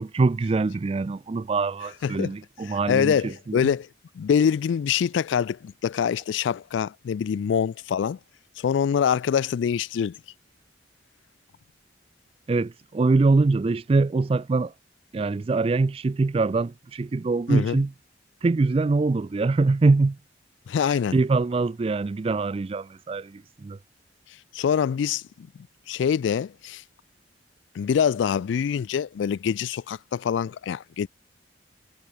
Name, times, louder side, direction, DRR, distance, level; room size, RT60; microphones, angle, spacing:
voice 1, 0.0-3.7 12.5-14.7 15.1-17.9 18.4-20.2 20.8-23.8, right 3 dB, 30° right, 0.3 m, -23 dB
voice 2, 2.0-2.3 2.6-3.9 4.1-8.2 8.6-10.2 17.5-17.8 20.7-21.2 24.5-26.8 27.7-31.1, left 7 dB, 75° left, 0.3 m, -25 dB
head